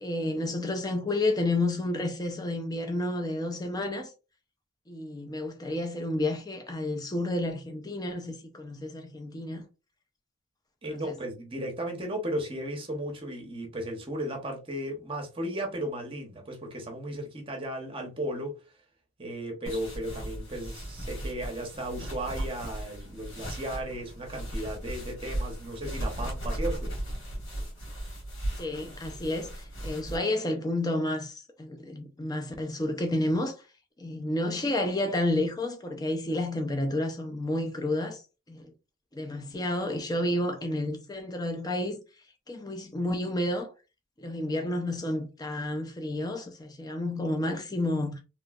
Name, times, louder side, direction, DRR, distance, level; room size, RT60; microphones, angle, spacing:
voice 1, 0.0-4.1 4.9-9.6 10.9-11.2 28.6-33.5 34.0-38.2 38.5-38.6 39.1-42.0 42.5-43.7 44.2-48.2, left 1 dB, 20° left, 0.5 m, -30 dB
voice 2, 10.8-18.6 19.2-26.9, right 1 dB, 25° right, 0.8 m, -35 dB
sound 1, 19.7-30.2, right 1 dB, 70° left, 1.7 m, -36 dB
3.1 x 3.0 x 2.3 m
head